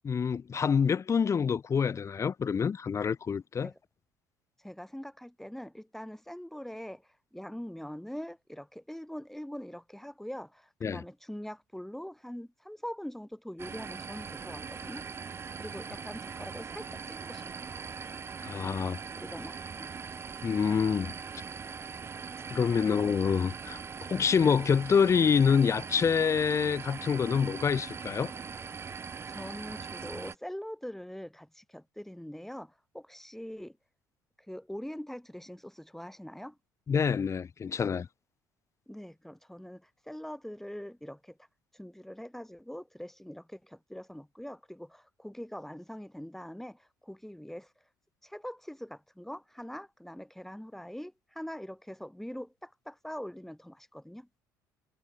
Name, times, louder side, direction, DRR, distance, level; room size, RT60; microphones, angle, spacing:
voice 1, 0.0-3.7 10.8-11.0 18.4-19.0 20.4-21.1 22.5-23.8 24.1-28.3 36.9-38.1, left 6 dB, 30° left, 0.5 m, -26 dB
voice 2, 4.6-15.1 15.6-17.5 19.1-19.9 29.0-33.8 34.5-36.6 38.9-41.4 41.7-47.7 48.2-54.3, equal, 5° left, 2.9 m, -43 dB
sound 1, 13.6-30.3, right 5 dB, 25° right, 0.5 m, -41 dB
figure-of-eight pair, 55°, 10 cm